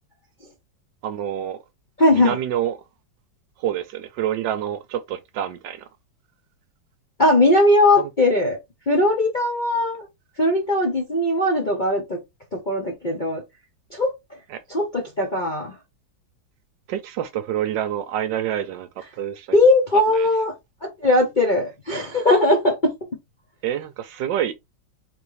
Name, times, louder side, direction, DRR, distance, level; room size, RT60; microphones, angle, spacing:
voice 1, 1.0-1.6 2.1-2.8 3.6-5.9 8.0-8.1 14.5-14.6 16.9-18.9 19.2-19.6 20.1-20.3 23.6-24.5, right 10 dB, 75° right, 1.2 m, -27 dB
voice 2, 2.0-2.4 7.2-8.6 8.9-10.0 10.4-12.2 12.5-13.4 13.9-14.1 14.7-15.7 19.5-20.5 20.8-22.9, left 1 dB, 40° left, 0.7 m, -19 dB
3.9 x 3.4 x 3.1 m
omnidirectional pair, 2.2 m